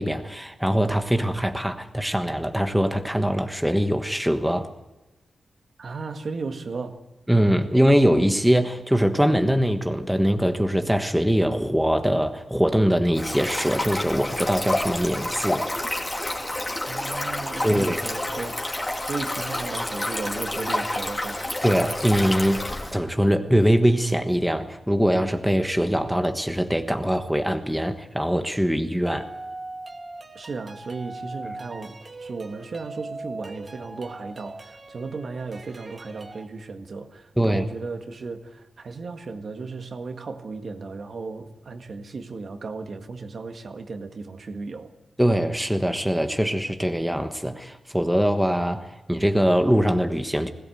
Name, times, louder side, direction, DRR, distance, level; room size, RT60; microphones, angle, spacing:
voice 1, 0.0-4.7 7.3-15.7 17.6-18.0 21.6-29.3 37.4-37.6 45.2-50.5, equal, 5° right, 1.3 m, -22 dB
voice 2, 5.8-7.0 16.9-18.6 19.0-21.4 30.3-44.9, right 4 dB, 60° right, 1.8 m, -35 dB
Stream, 13.1-22.9, left 1 dB, 20° left, 3.0 m, -29 dB
sound 1, 29.1-36.4, right 2 dB, 40° right, 2.0 m, -40 dB
20.5 x 17.5 x 7.9 m
wide cardioid pair, 115°, 0 cm